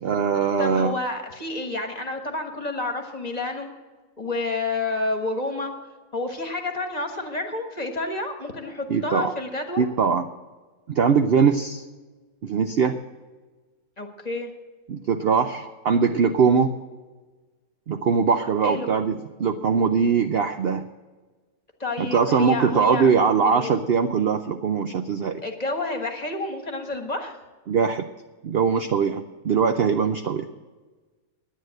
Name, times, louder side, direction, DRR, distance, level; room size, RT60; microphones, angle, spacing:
voice 1, 0.0-0.9 8.9-9.3 9.8-10.3 10.9-11.8 12.4-12.9 14.9-16.7 17.9-20.8 22.0-25.4 27.7-28.0 28.4-30.4, right 6 dB, 70° right, 8 dB, 0.5 m, -21 dB
voice 2, 0.6-3.7 4.2-5.7 6.1-9.8 14.0-14.5 18.6-18.9 21.8-23.1 23.4-23.7 25.4-27.4, left 2 dB, 25° left, 4 dB, 1.4 m, -29 dB
10.0 x 10.0 x 7.8 m, 1.3 s
omnidirectional pair, 1.8 m